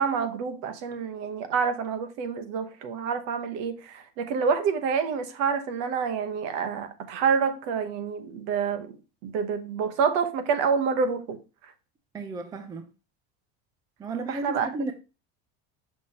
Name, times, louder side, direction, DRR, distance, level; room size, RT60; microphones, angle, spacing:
voice 1, 0.0-9.0 9.2-11.4 14.3-14.7, right 6 dB, 60° right, 1.1 m, -27 dB
voice 2, 12.1-12.8 14.0-14.9, right 3 dB, 10° right, 0.4 m, -33 dB
6.2 x 5.8 x 2.8 m
cardioid pair, 170°, 31 cm